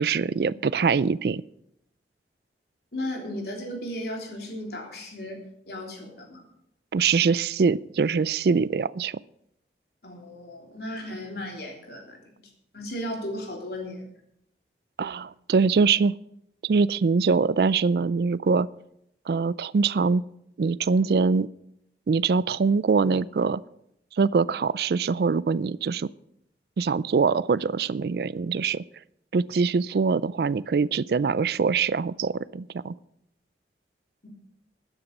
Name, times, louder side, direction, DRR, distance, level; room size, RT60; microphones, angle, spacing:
voice 1, 0.0-1.4 6.9-9.2 15.0-16.1 16.6-18.7 19.3-20.2 20.6-21.5 22.1-23.6 24.2-26.1 26.8-28.8 29.3-32.9, right 5 dB, 60° right, 19 dB, 0.4 m, -23 dB
voice 2, 2.9-5.4 5.7-6.4 10.0-12.2 12.7-14.1 34.2-34.3, left 1 dB, 65° left, 1 dB, 3.3 m, -35 dB
13.0 x 9.9 x 5.3 m, 0.76 s
head